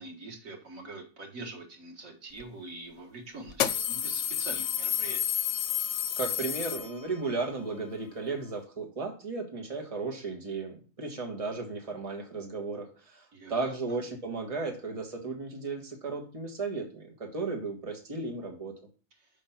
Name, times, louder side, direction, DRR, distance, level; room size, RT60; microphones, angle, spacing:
voice 1, 0.0-5.2 13.3-13.7 19.2-19.3, right 2 dB, 85° right, 1 dB, 2.0 m, -44 dB
sound 1, 2.4-2.5 3.5-7.3, left 9 dB, 70° left, 0.9 m, -30 dB
voice 2, 6.2-18.7, right 3 dB, 30° right, 2 dB, 1.4 m, -35 dB
5.2 x 5.2 x 5.6 m, 0.37 s
omnidirectional pair, 1.4 m